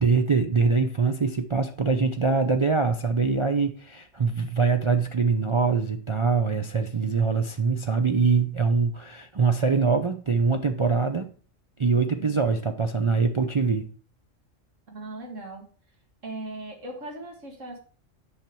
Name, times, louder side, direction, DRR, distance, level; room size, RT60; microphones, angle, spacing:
voice 1, 0.0-11.3 11.8-13.9, right 4 dB, 45° right, 0.4 m, -23 dB
voice 2, 14.9-15.7 16.2-17.8, right 2 dB, 75° right, 2.2 m, -38 dB
8.7 x 5.9 x 4.5 m
omnidirectional pair, 1.3 m